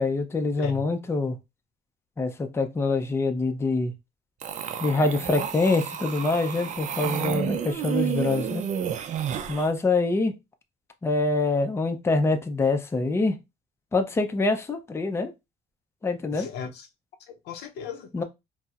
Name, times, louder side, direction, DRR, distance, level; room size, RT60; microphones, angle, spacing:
voice 1, 0.0-1.3 2.2-3.9 4.8-8.6 9.5-10.3 11.0-13.4 13.9-15.3 16.0-16.5 18.1-18.2, left 3 dB, 15° left, 0.4 m, -25 dB
sound 1, 4.4-9.7, right 8 dB, 45° right, 0.4 m, -31 dB
voice 2, 16.3-16.9 17.3-18.2, left 6 dB, 85° left, 0.6 m, -37 dB
4.1 x 2.0 x 2.4 m
cardioid pair, 110°, 17 cm